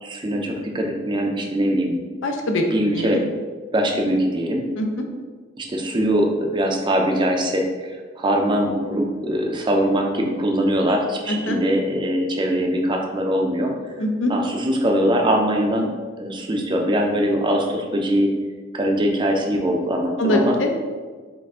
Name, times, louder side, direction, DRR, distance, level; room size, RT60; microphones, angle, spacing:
voice 1, 0.0-2.0 2.7-3.2 3.7-4.6 5.6-13.7 14.3-15.9 16.2-18.3 18.7-20.6, equal, 25° right, 2 dB, 0.5 m, -22 dB
voice 2, 2.2-2.6 2.9-3.2 4.8-4.9 11.3-11.6 14.0-14.3 20.2-20.7, left 1 dB, 85° left, 3 dB, 0.6 m, -22 dB
4.7 x 2.5 x 3.6 m, 1.5 s
head